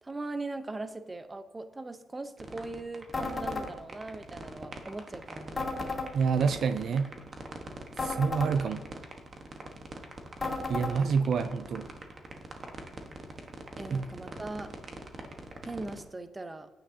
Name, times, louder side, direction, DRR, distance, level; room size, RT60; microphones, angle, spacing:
voice 1, 0.0-5.6 13.8-14.7 15.6-16.7, right 2 dB, 20° right, 10 dB, 0.7 m, -40 dB
sound 1, 2.4-16.0, right 3 dB, 40° right, 1.2 m, -43 dB
sound 2, 3.1-3.7 5.6-6.1 8.0-8.5 10.4-10.9, left 3 dB, 25° left, 2.3 m, -33 dB
voice 2, 6.1-7.1 8.0-8.8 10.7-11.9 13.9-14.0, right 5 dB, 60° right, 10 dB, 0.4 m, -27 dB
10.0 x 8.8 x 2.8 m, 1.1 s
cardioid pair, 90°, 0 cm